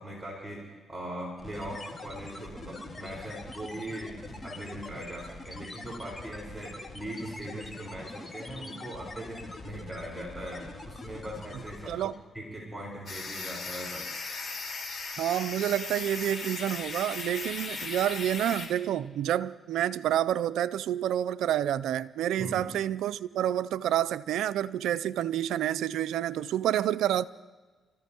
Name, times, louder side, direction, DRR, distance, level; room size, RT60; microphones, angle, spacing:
voice 1, 0.0-14.2 22.4-22.7, right 1 dB, 10° right, 4.6 m, -40 dB
sound 1, 1.4-12.3, left 2 dB, 30° left, 1.9 m, -44 dB
sound 2, 13.1-18.7, left 4 dB, 50° left, 4.2 m, -37 dB
voice 2, 15.2-27.3, right 11 dB, 85° right, 0.4 m, -28 dB
29.0 x 14.5 x 2.9 m
supercardioid pair, 65°, 0 cm